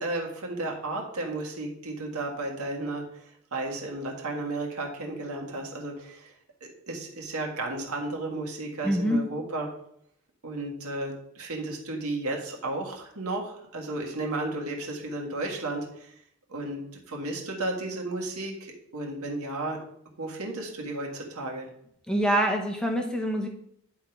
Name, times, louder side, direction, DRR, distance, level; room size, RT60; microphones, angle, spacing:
voice 1, 0.0-6.3 6.6-9.7 10.4-16.1 16.5-16.8 17.1-19.8 20.2-21.7, right 2 dB, 85° right, 0 dB, 1.7 m, -33 dB
voice 2, 8.8-9.3 22.1-23.5, equal, 5° left, 2 dB, 0.9 m, -25 dB
10.5 x 3.7 x 4.5 m, 0.69 s
head